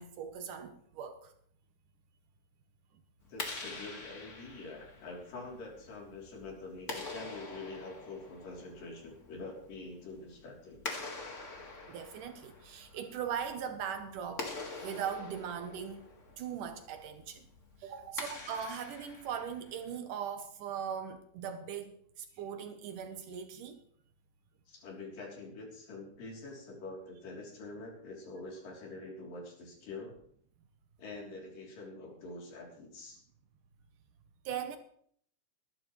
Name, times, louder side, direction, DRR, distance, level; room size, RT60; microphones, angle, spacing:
voice 1, 0.0-1.3 11.9-16.0 16.4-17.5 17.8-23.8 34.5-34.8, right 8 dB, 75° right, 2.5 m, -40 dB
Clapping, 3.2-20.0, left 3 dB, 30° left, 1.5 m, -46 dB
voice 2, 3.3-10.8 24.7-30.1 31.0-33.2, left 3 dB, 80° left, 5.0 m, -45 dB
21.0 x 11.5 x 3.2 m
omnidirectional pair, 3.9 m